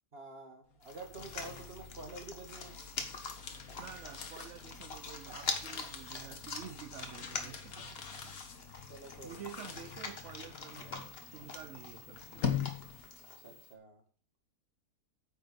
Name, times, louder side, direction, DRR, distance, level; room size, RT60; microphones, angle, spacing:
voice 1, 0.1-2.8 5.3-5.4 7.8-7.9 8.9-9.4 13.3-14.0, right 2 dB, 40° right, 4 dB, 2.4 m, -48 dB
sound 1, 0.8-13.3, left 7 dB, 65° left, 1.8 m, -43 dB
sound 2, 0.8-13.7, left 3 dB, 40° left, 1.6 m, -45 dB
voice 2, 3.8-8.4 9.2-12.5, right 9 dB, 60° right, 9 dB, 1.0 m, -50 dB
9.3 x 6.5 x 6.9 m, 0.44 s
omnidirectional pair, 1.7 m